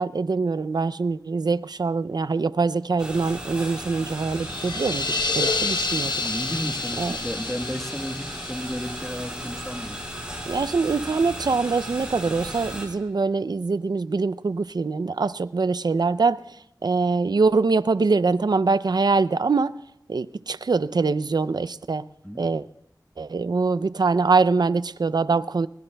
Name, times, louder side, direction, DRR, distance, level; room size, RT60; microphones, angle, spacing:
voice 1, 0.0-6.1 7.0-7.2 10.5-19.7 20.1-22.1 22.4-22.7 23.2-25.7, right 4 dB, 65° right, 17 dB, 0.4 m, -23 dB
sound 1, 3.0-12.9, equal, 10° right, 6.7 m, -36 dB
sound 2, 4.3-10.0, left 3 dB, 85° left, 0.8 m, -29 dB
voice 2, 6.2-10.0 22.2-22.4, equal, 5° left, 4 dB, 1.3 m, -33 dB
23.0 x 21.0 x 2.3 m, 0.80 s
wide cardioid pair, 40°, 7 cm